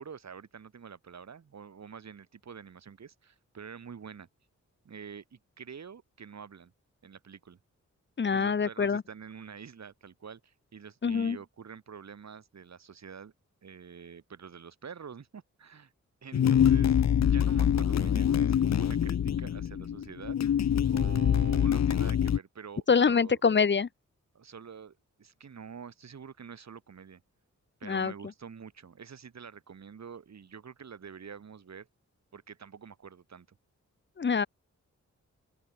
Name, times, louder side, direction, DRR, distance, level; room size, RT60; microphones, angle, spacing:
voice 1, 0.0-4.3 4.9-6.7 7.0-7.6 8.3-13.3 13.6-15.9 16.2-17.0 17.3-20.4 20.9-23.4 24.3-27.2 27.8-31.9 32.3-33.5, right 6 dB, 65° right, 3.6 m, -47 dB
voice 2, 8.2-9.0 11.0-11.4 22.9-23.9 27.8-28.1 34.2-34.5, left 5 dB, 40° left, 0.9 m, -25 dB
sound 1, 16.3-22.4, left 9 dB, 65° left, 0.8 m, -25 dB
open air
wide cardioid pair, 135°, 29 cm